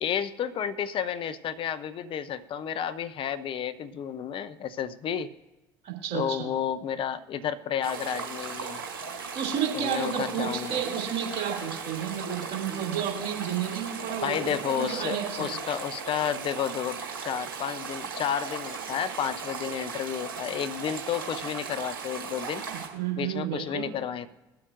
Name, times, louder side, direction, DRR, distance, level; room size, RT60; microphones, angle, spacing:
voice 1, 0.0-5.3 6.1-8.8 9.7-10.8 14.2-22.6 23.2-24.3, left 8 dB, 50° left, 13 dB, 0.6 m, -31 dB
voice 2, 5.8-6.5 9.3-15.6 22.7-23.9, right 9 dB, 60° right, -1 dB, 2.7 m, -31 dB
sound 1, 7.8-22.9, right 5 dB, 85° right, 1.5 m, -37 dB
21.0 x 7.6 x 2.6 m, 1.1 s
figure-of-eight pair, 55°, 12 cm